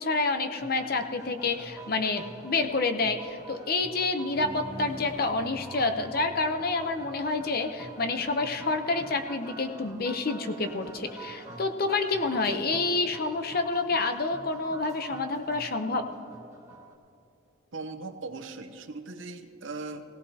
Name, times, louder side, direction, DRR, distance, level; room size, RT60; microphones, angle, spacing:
voice 1, 0.0-16.1, left 3 dB, 45° left, 7 dB, 0.8 m, -28 dB
sound 1, 0.6-16.9, right 2 dB, 15° right, 1.6 m, -47 dB
sound 2, 4.3-9.1, equal, 75° left, 3.9 m, -46 dB
voice 2, 17.7-20.0, right 3 dB, 70° right, 7 dB, 0.8 m, -39 dB
17.5 x 17.0 x 2.9 m, 2.7 s
head